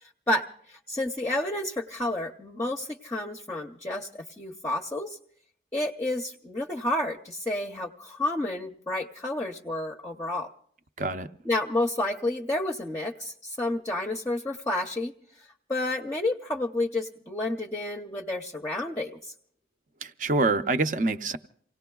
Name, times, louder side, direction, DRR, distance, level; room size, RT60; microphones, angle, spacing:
voice 1, 0.0-5.2 5.7-10.5 11.4-19.3, left 1 dB, 15° left, 1 dB, 0.6 m, -30 dB
voice 2, 11.0-11.3 20.0-21.4, right 3 dB, 45° right, 9 dB, 0.6 m, -26 dB
29.0 x 18.0 x 2.3 m, 0.62 s
head